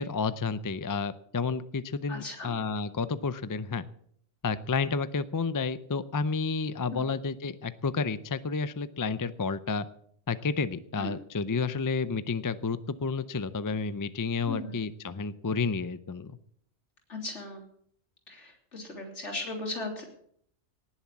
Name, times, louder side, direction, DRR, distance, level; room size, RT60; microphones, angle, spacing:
voice 1, 0.0-3.8 4.4-9.9 10.3-16.3, left 4 dB, 30° left, 14 dB, 0.4 m, -31 dB
voice 2, 2.1-2.5 6.9-7.0 11.0-11.1 14.5-14.8 17.1-17.7 18.3-20.0, left 2 dB, 70° left, 1 dB, 3.7 m, -37 dB
19.0 x 7.3 x 7.3 m, 0.65 s
omnidirectional pair, 1.2 m